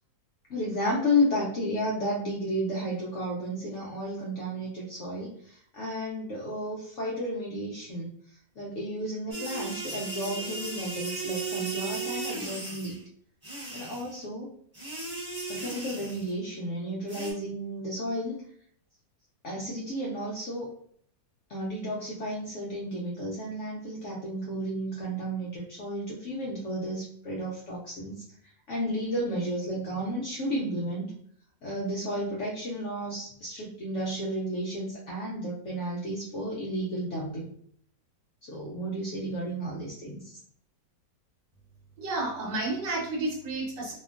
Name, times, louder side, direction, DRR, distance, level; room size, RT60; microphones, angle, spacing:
voice 1, 0.5-8.1 8.6-13.0 13.7-14.5 15.5-18.4 19.4-20.7 21.5-28.2 28.7-31.1 31.6-37.5 38.5-40.2, equal, 65° left, -4 dB, 0.7 m, -32 dB
sound 1, 9.3-13.0 13.4-14.2 14.7-16.3 17.1-17.3, right 3 dB, 10° right, 0.9 m, -36 dB
voice 2, 42.0-43.9, right 2 dB, 85° right, -1 dB, 1.3 m, -31 dB
2.8 x 2.5 x 2.4 m, 0.62 s
omnidirectional pair, 1.9 m